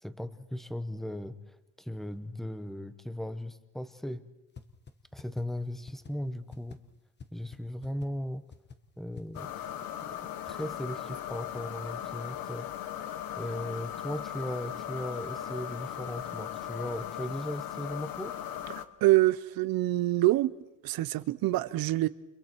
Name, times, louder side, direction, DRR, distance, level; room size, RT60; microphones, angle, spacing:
voice 1, 0.0-4.3 5.1-6.8 7.3-8.5 9.0-9.5 10.0-12.7 13.4-18.4, equal, ahead, 1.1 m, -37 dB
sound 1, 4.6-4.7 4.9-5.0 5.2-5.4 5.9-6.1 6.5-6.8 7.2-7.3 7.5-7.6 7.8-8.1 8.5-8.8 9.2-9.4, left 5 dB, 30° left, 1.4 m, -45 dB
sound 2, 9.3-18.8, left 10 dB, 85° left, 1.4 m, -38 dB
voice 2, 19.0-20.5 20.8-22.1, right 17 dB, 85° right, 0.9 m, -25 dB
29.5 x 29.5 x 4.6 m
cardioid pair, 135°, 34 cm